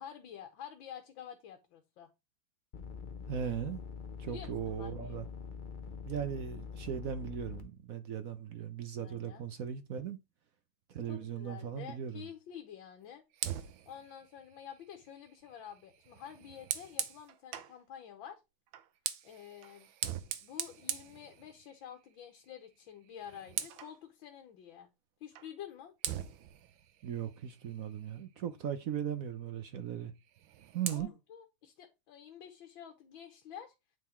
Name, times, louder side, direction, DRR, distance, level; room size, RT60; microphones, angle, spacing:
voice 1, 0.0-2.1 4.3-5.2 9.0-9.4 11.1-13.2 13.5-18.4 19.2-19.9 20.4-24.9 25.2-25.9 30.9-33.7, left 9 dB, 80° left, 1.8 m, -49 dB
sound 1, 2.7-7.6, left 6 dB, 60° left, 0.5 m, -44 dB
voice 2, 3.3-3.8 4.2-5.2 6.1-10.2 10.9-12.2 27.0-30.1 30.7-31.1, right 8 dB, 65° right, 0.9 m, -38 dB
Fire, 13.3-17.8 18.7-21.9 22.3-22.6 22.9-24.0 25.4-25.5 26.0-28.3 30.2-31.0, right 11 dB, 85° right, 1.5 m, -42 dB
9.2 x 3.9 x 4.3 m
omnidirectional pair, 2.1 m